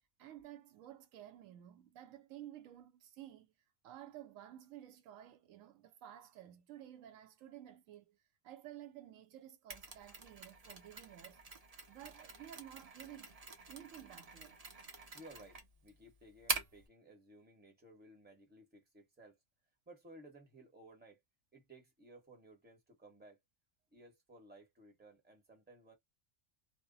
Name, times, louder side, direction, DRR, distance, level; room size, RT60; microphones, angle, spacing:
voice 1, 0.2-3.5 3.8-8.2 8.4-11.4 11.9-13.3 13.7-14.6, right 12 dB, 85° right, 1.0 m, -53 dB
Mechanisms, 9.7-16.9, right 4 dB, 40° right, 0.6 m, -45 dB
voice 2, 15.1-19.4 19.9-21.2 21.5-23.4 23.9-26.0, right 1 dB, 10° right, 0.9 m, -58 dB
2.2 x 2.1 x 3.8 m
omnidirectional pair, 1.3 m